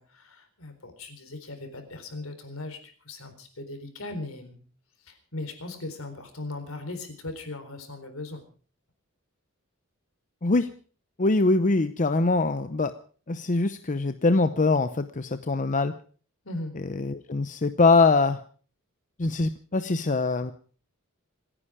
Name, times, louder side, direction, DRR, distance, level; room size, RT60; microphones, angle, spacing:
voice 1, 0.0-4.6 5.0-8.4 16.4-16.7, left 2 dB, 75° left, 8 dB, 4.1 m, -38 dB
voice 2, 11.2-12.9 13.3-15.9 17.0-18.4 19.2-20.5, left 3 dB, 35° left, 10 dB, 0.7 m, -23 dB
27.0 x 10.0 x 4.9 m, 0.42 s
head